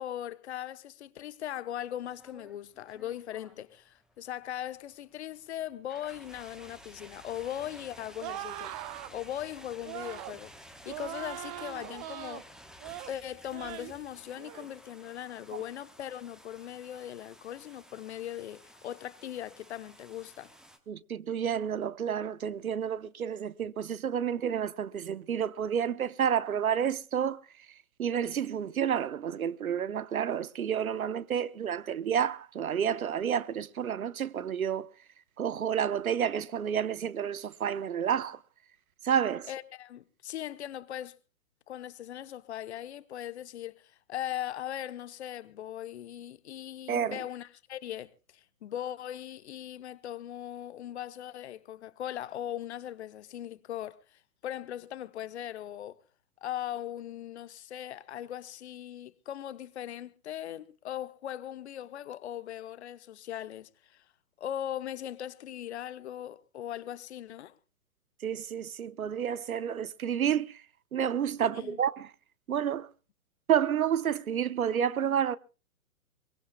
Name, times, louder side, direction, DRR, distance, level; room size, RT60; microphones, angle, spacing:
voice 1, 0.0-8.7 9.1-10.5 10.8-12.5 13.1-20.5 39.5-41.2 41.7-56.0 56.4-64.0 64.4-67.5 71.4-71.8, left 11 dB, 50° left, 1.0 m, -39 dB
sound 1, 1.8-20.8, equal, ahead, 1.0 m, -54 dB
sound 2, 8.2-9.1 9.8-10.4 10.9-12.4 12.8-13.1 13.5-13.9 14.4-14.7, right 14 dB, 25° right, 0.7 m, -41 dB
voice 2, 20.9-27.4 28.0-34.9 35.4-38.4 39.0-39.5 46.9-47.2 68.2-70.6 70.9-72.1 72.5-72.9 73.5-75.4, right 8 dB, 70° right, 1.0 m, -30 dB
23.0 x 22.0 x 2.2 m
figure-of-eight pair, 125°, 43 cm